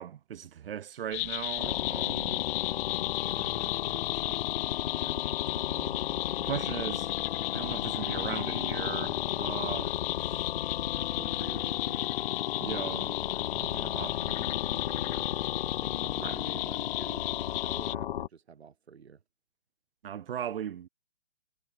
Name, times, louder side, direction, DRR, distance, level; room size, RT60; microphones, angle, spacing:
voice 1, 0.0-2.5 3.2-4.4 5.0-6.0 6.4-7.1 7.5-10.5 10.9-11.6 12.6-15.4 16.2-16.4 20.0-20.9, right 9 dB, 60° right, 1.5 m, -39 dB
sound 1, 1.1-17.9, left 26 dB, 20° left, 1.2 m, -35 dB
sound 2, 1.6-18.3, left 11 dB, 60° left, 0.5 m, -34 dB
voice 2, 11.2-12.0 13.6-13.9 15.8-19.2, right 6 dB, 80° right, 2.3 m, -49 dB
hypercardioid pair, 140°, 32 cm